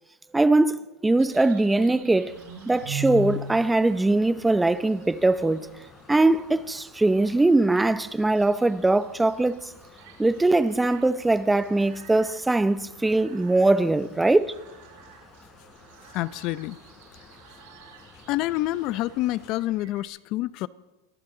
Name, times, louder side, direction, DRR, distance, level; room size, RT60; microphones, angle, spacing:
voice 1, 0.3-2.4 2.7-5.8 6.1-9.6 10.2-14.5, right 2 dB, 10° right, 0.7 m, -21 dB
sound 1, 1.2-20.0, equal, 70° right, 5.8 m, -43 dB
sound 2, 2.3-19.5, left 3 dB, 20° left, 4.4 m, -52 dB
voice 2, 16.1-16.8 18.3-20.7, left 16 dB, 50° left, 0.6 m, -27 dB
29.0 x 23.0 x 3.9 m
supercardioid pair, 130°, 0 cm